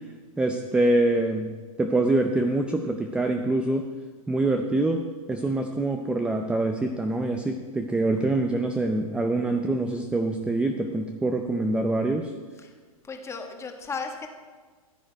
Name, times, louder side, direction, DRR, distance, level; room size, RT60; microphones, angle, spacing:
voice 1, 0.4-1.5 1.8-3.9 4.3-5.0 5.3-12.3, right 2 dB, 5° right, 5 dB, 0.6 m, -25 dB
voice 2, 13.1-14.3, left 5 dB, 15° left, 4 dB, 1.4 m, -35 dB
14.5 x 7.9 x 4.6 m, 1.4 s
hypercardioid pair, 130°, 19 cm